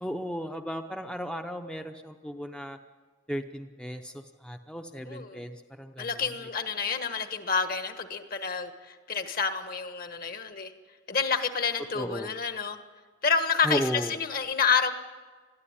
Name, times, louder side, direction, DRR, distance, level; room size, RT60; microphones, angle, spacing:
voice 1, 0.0-2.8 3.3-6.2 11.9-12.4 13.6-14.2, equal, 5° left, 5 dB, 0.6 m, -35 dB
voice 2, 5.1-5.4 6.0-10.7 11.1-12.8 13.2-14.9, left 5 dB, 50° left, 8 dB, 1.4 m, -29 dB
21.5 x 14.0 x 9.9 m, 1.4 s
head